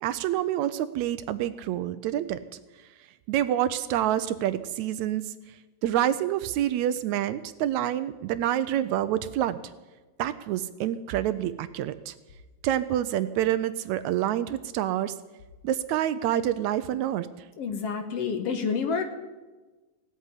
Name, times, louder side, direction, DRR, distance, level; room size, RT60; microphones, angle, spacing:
voice 1, 0.0-2.4 3.3-5.3 5.8-9.6 10.2-12.2 12.6-15.2 15.6-17.3, right 12 dB, 80° right, 13 dB, 1.8 m, -27 dB
voice 2, 17.6-19.0, left 5 dB, 60° left, 7 dB, 1.9 m, -28 dB
17.5 x 8.3 x 9.7 m, 1.2 s
omnidirectional pair, 3.5 m